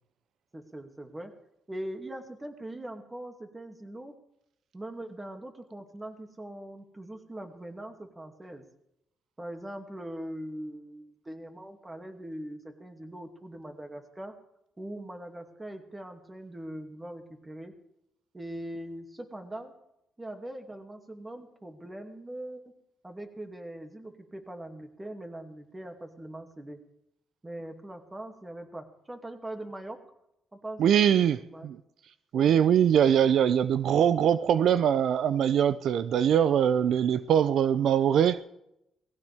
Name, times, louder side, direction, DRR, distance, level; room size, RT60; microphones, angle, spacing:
voice 1, 0.5-1.3 1.7-4.2 4.7-8.6 9.4-14.3 14.8-17.7 18.3-19.7 20.2-22.6 23.0-26.8 27.4-30.0 30.5-31.7 32.3-32.6, right 1 dB, 15° right, 2.5 m, -41 dB
voice 2, 30.8-31.4 31.6-31.8 32.3-38.4, right 9 dB, 70° right, 0.5 m, -22 dB
19.0 x 16.0 x 3.6 m
cardioid pair, 90°, 0 cm